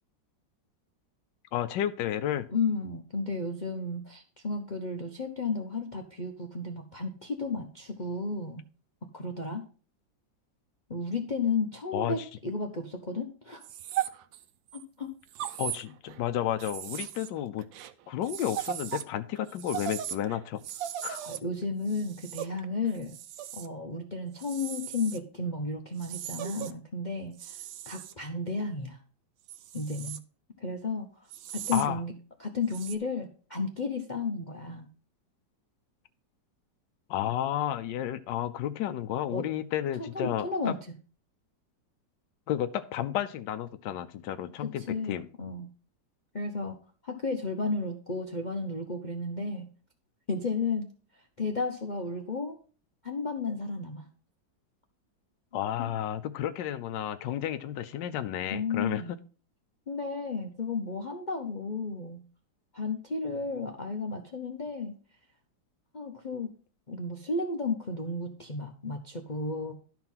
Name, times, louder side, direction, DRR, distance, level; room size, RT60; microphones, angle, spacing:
voice 1, 1.5-2.5 11.9-12.1 15.6-17.6 18.1-20.6 21.0-21.2 31.7-32.0 37.1-40.5 42.5-45.3 55.5-59.2, left 11 dB, 75° left, 9 dB, 1.3 m, -32 dB
voice 2, 2.5-8.6 9.1-9.6 10.9-13.6 14.7-15.1 21.2-23.2 23.5-29.0 29.7-30.2 30.6-31.3 31.5-32.1 32.4-34.9 39.3-39.5 40.0-40.8 44.8-45.7 46.3-46.8 47.0-49.7 50.3-50.9 51.1-52.5 53.0-54.1 55.8-55.9 58.5-59.2 59.9-62.2 62.7-64.9 65.9-66.5 66.9-69.7, left 3 dB, 40° left, 4 dB, 0.6 m, -33 dB
sound 1, 13.6-14.8 15.3-16.2 16.6-19.1 19.3-23.7 24.4-25.2 26.0-26.7 27.4-28.1 29.5-30.2 31.3-31.9 32.7-33.0, right 11 dB, 85° right, 1.4 m, -38 dB
12.0 x 4.6 x 5.6 m, 0.38 s
omnidirectional pair, 2.0 m